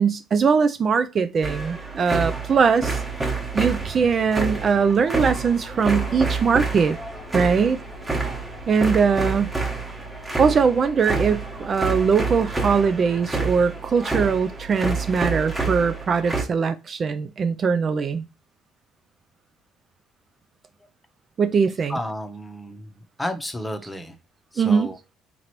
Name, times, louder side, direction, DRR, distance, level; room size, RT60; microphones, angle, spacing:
voice 1, 0.0-3.0 3.5-7.0 7.3-7.8 8.7-9.5 10.4-18.2 21.4-22.0 24.6-24.9, right 5 dB, 40° right, 0.3 m, -21 dB
sound 1, 1.4-16.4, right 3 dB, 15° right, 1.1 m, -28 dB
sound 2, 1.9-13.3, left 6 dB, 65° left, 0.7 m, -46 dB
voice 2, 21.9-22.9 23.2-24.1 24.5-25.0, left 1 dB, 10° left, 0.8 m, -32 dB
3.8 x 3.0 x 3.0 m
cardioid pair, 100°, 0 cm